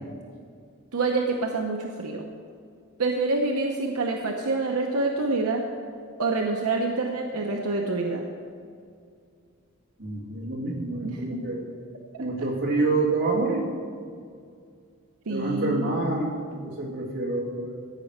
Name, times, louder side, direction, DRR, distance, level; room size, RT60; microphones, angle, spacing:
voice 1, 0.9-2.2 3.0-5.6 6.2-8.3 11.0-11.4 12.1-12.2 12.8-12.9 15.3-16.0, right 3 dB, 85° right, 2 dB, 0.8 m, -27 dB
voice 2, 10.0-11.6 12.2-13.7 15.3-17.8, right 3 dB, 55° right, -4 dB, 2.3 m, -27 dB
14.0 x 5.3 x 7.3 m, 2.3 s
head